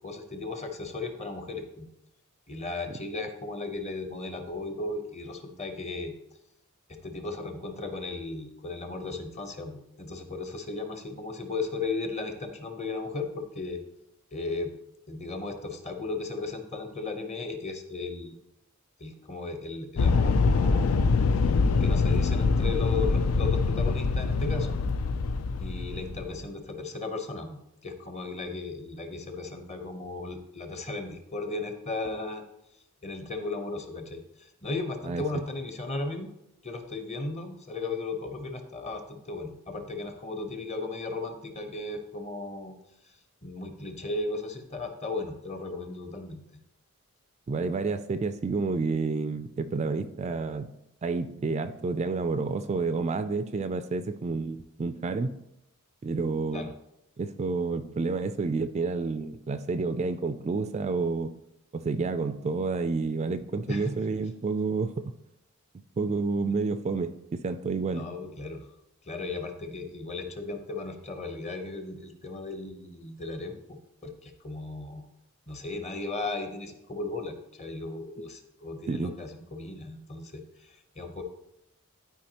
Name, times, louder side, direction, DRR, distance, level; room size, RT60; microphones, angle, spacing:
voice 1, 0.0-1.9 2.5-6.1 6.9-13.8 14.3-14.7 15.1-18.3 19.0-21.2 21.8-24.8 25.6-32.4 33.0-36.3 36.6-42.7 43.0-43.1 43.4-46.4 56.5-56.7 63.7-63.9 67.9-68.7 69.0-75.1 75.5-81.2, left 3 dB, 30° left, 6 dB, 0.9 m, -36 dB
sound 1, 20.0-26.4, left 4 dB, 80° left, 0.4 m, -24 dB
voice 2, 47.5-50.7 51.0-55.4 56.0-56.7 57.2-61.3 61.7-65.1 66.0-68.1 78.9-79.2, right 4 dB, 30° right, 10 dB, 0.3 m, -29 dB
12.0 x 4.7 x 2.9 m, 0.81 s
head